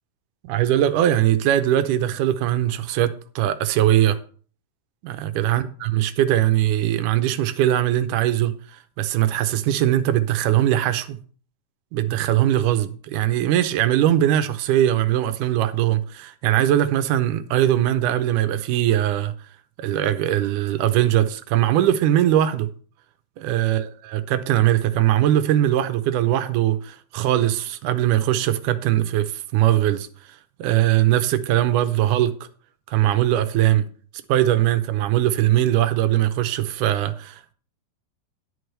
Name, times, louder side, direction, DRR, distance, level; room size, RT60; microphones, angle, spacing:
voice 1, 0.4-4.2 5.0-11.2 11.9-19.3 19.8-22.7 23.4-30.1 30.6-32.3 32.9-33.9 34.3-37.5, right 12 dB, 90° right, 2.2 m, -21 dB
11.0 x 4.7 x 6.5 m
omnidirectional pair, 3.6 m